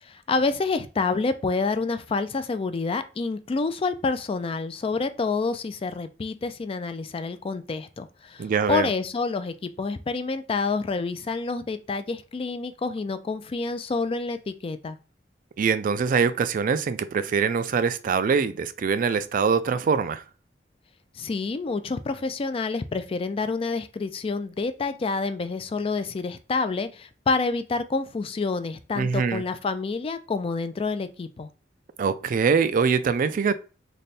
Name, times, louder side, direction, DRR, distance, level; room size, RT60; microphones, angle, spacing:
voice 1, 0.0-15.0 21.1-31.5, left 4 dB, 30° left, 0.3 m, -28 dB
voice 2, 8.4-8.9 15.6-20.2 29.0-29.4 32.0-33.6, right 5 dB, 50° right, 0.3 m, -23 dB
3.4 x 2.2 x 4.0 m
head